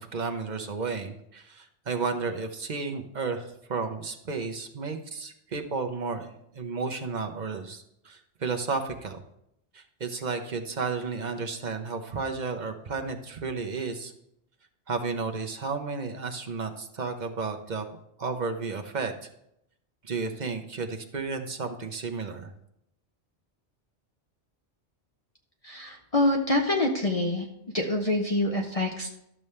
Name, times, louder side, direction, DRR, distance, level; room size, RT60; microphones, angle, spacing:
voice 1, 0.0-9.2 9.7-14.1 14.9-17.9 18.2-19.3 20.0-22.5, right 4 dB, 45° right, 5 dB, 0.8 m, -33 dB
voice 2, 25.6-27.5 27.7-29.1, left 2 dB, 35° left, 1 dB, 0.8 m, -26 dB
12.0 x 6.9 x 3.3 m, 0.77 s
omnidirectional pair, 1.2 m